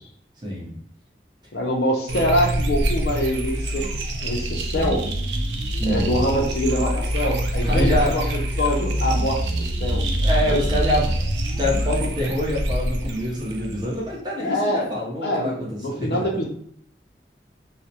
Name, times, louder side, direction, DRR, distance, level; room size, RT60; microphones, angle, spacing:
voice 1, 0.4-0.8 5.8-6.2 7.6-8.4 8.8-9.3 10.2-11.1 11.5-16.2, left 1 dB, 25° right, -4 dB, 0.6 m, -26 dB
voice 2, 1.5-3.9 4.2-5.0 5.8-8.2 8.6-10.0 10.5-10.6 14.4-16.4, equal, 65° left, 0 dB, 0.5 m, -24 dB
sound 1, 2.1-14.0, right 1 dB, 80° right, 0.4 m, -25 dB
2.2 x 2.0 x 2.7 m, 0.66 s
head